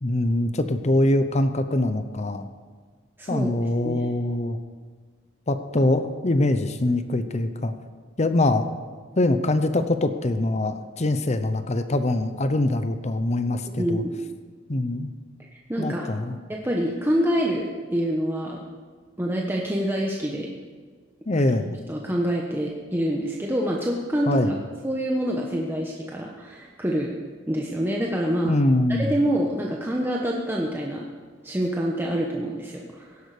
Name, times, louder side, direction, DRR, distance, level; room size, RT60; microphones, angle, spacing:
voice 1, 0.0-2.5 3.3-4.6 5.5-7.7 8.2-8.7 9.2-14.0 14.7-15.1 15.8-16.4 21.3-21.8 24.3-24.6 28.4-29.1, left 1 dB, 40° left, 10 dB, 0.8 m, -23 dB
voice 2, 3.2-4.0 13.8-14.1 15.5-16.1 16.5-18.6 19.2-20.5 21.9-24.6 24.8-27.1 27.5-28.5 29.0-31.0 31.4-33.2, equal, 10° right, -1 dB, 1.2 m, -26 dB
17.5 x 11.5 x 5.0 m, 1.5 s
head